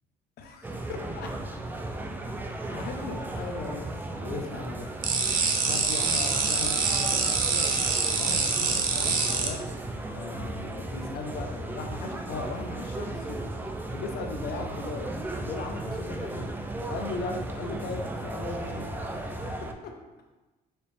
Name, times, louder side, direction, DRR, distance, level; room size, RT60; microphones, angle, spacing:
voice 1, 0.4-1.3 2.7-4.9 5.4-7.8 8.2-9.6 10.1-13.4 13.9-15.1 15.4-16.5 16.9-19.3, left 3 dB, 65° left, 3 dB, 0.7 m, -38 dB
sound 1, 0.6-19.7, right 2 dB, 10° right, 0.4 m, -35 dB
sound 2, 5.0-9.5, right 5 dB, 55° right, 0.7 m, -25 dB
4.4 x 3.1 x 3.2 m, 1.2 s
cardioid pair, 110°, 17 cm